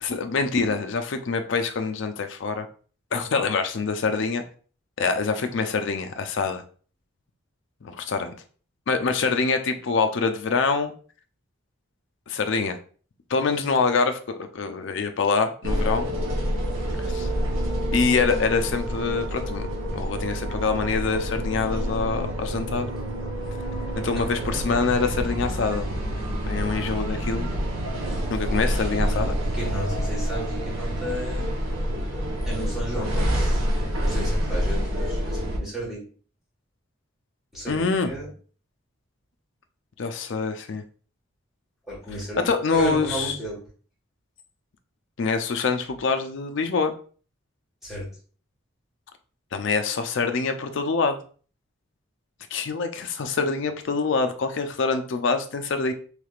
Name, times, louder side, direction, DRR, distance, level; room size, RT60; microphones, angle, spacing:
voice 1, 0.0-2.7 3.1-4.4 5.0-6.6 7.8-8.3 8.9-10.9 12.3-12.8 13.3-16.1 17.0-17.3 17.9-19.7 19.9-22.9 24.0-25.9 26.4-27.5 28.3-29.4 37.7-38.1 40.0-40.8 42.4-43.4 45.2-46.9 49.5-51.2 52.5-55.9, left 4 dB, 60° left, 7 dB, 0.4 m, -25 dB
sound 1, 15.6-35.6, equal, 85° right, 0.8 m, -27 dB
voice 2, 29.5-31.5 32.5-33.6 34.0-36.1 37.5-38.3 41.9-43.6 47.8-48.1, right 1 dB, ahead, -6 dB, 1.4 m, -33 dB
3.3 x 3.2 x 2.4 m, 0.41 s
head